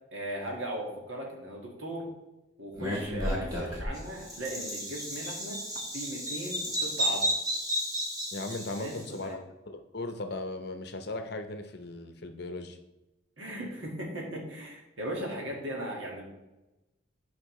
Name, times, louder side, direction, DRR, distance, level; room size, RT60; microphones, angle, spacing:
voice 1, 0.1-2.1 2.6-5.6 5.9-7.3 8.7-9.4 13.4-16.2, right 1 dB, 70° right, 0 dB, 1.9 m, -38 dB
Bird vocalization bird call bird song, 2.8-9.0, equal, 20° right, 1.5 m, -32 dB
voice 2, 8.3-9.4 9.7-12.8, left 2 dB, 55° left, 7 dB, 0.7 m, -37 dB
10.0 x 5.2 x 3.2 m, 0.99 s
head